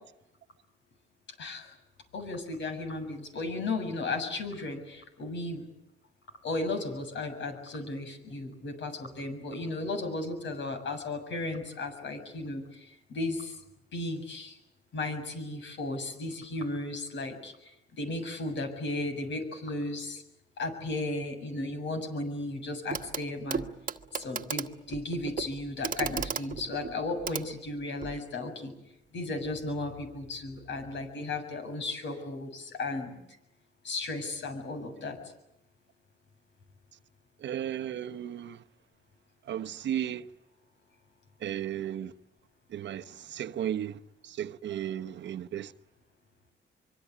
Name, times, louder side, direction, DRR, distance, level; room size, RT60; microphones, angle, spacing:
voice 1, 1.4-1.7 2.1-5.7 6.4-13.6 13.9-14.6 14.9-17.7 18.0-20.2 20.6-23.7 24.1-28.7 29.1-33.2 33.8-35.2, left 2 dB, 65° left, 7.3 m, -35 dB
Clock, 22.9-23.2 23.5-28.2 29.4-29.5, right 6 dB, 45° right, 1.3 m, -36 dB
voice 2, 37.4-38.6 39.5-40.2 41.4-42.1 42.7-43.0 43.3-44.0 44.3-45.7, right 10 dB, 65° right, 1.0 m, -34 dB
25.0 x 23.5 x 8.6 m
cardioid pair, 90°, 20 cm